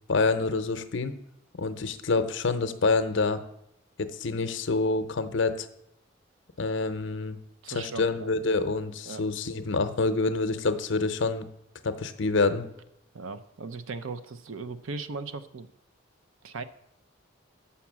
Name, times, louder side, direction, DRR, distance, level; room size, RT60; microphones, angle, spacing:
voice 1, 0.1-1.1 1.5-3.4 4.0-5.7 6.6-7.4 7.7-11.5 11.8-12.6, left 3 dB, 65° left, 10 dB, 0.7 m, -27 dB
voice 2, 7.6-8.3 9.1-9.2 13.1-15.7 16.4-16.6, right 4 dB, 85° right, 12 dB, 0.6 m, -37 dB
7.0 x 5.8 x 7.3 m, 0.81 s
head